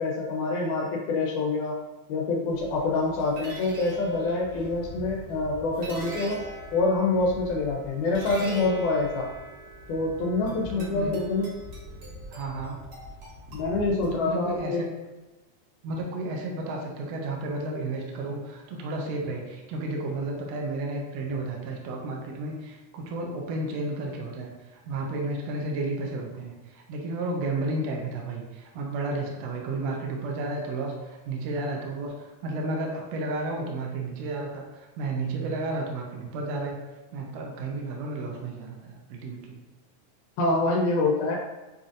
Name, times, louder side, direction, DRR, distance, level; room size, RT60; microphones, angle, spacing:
voice 1, 0.0-1.8 2.1-6.4 6.7-9.3 9.9-11.5 13.5-14.9 40.4-41.4, left 3 dB, 90° left, -2 dB, 2.0 m, -26 dB
sound 1, 2.5-14.6, right 1 dB, 55° right, 1.1 m, -42 dB
voice 2, 10.4-11.1 12.3-12.8 14.1-14.9 15.8-36.8 37.1-39.6, right 2 dB, 75° right, 0 dB, 1.6 m, -32 dB
5.5 x 2.5 x 2.5 m, 1.1 s
omnidirectional pair, 3.4 m